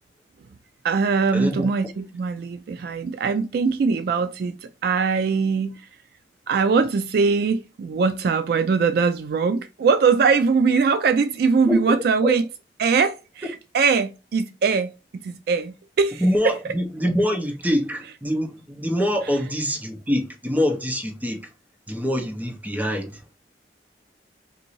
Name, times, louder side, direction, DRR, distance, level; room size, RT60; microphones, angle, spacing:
voice 1, 0.8-5.9 6.5-12.5 12.8-16.6, right 5 dB, 60° right, 0.3 m, -22 dB
voice 2, 11.7-12.0 12.2-12.3 16.2-21.5 21.9-23.2, equal, 10° right, 0.7 m, -24 dB
3.9 x 2.6 x 3.0 m
head